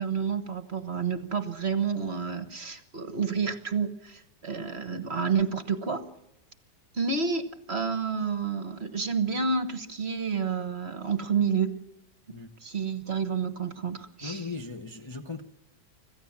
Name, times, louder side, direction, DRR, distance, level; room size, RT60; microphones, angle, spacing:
voice 1, 0.0-6.0 6.9-11.7 12.6-14.4, right 5 dB, 40° right, 1.3 m, -29 dB
voice 2, 14.2-15.4, left 4 dB, 20° left, 0.8 m, -38 dB
26.0 x 15.0 x 7.2 m
omnidirectional pair, 1.9 m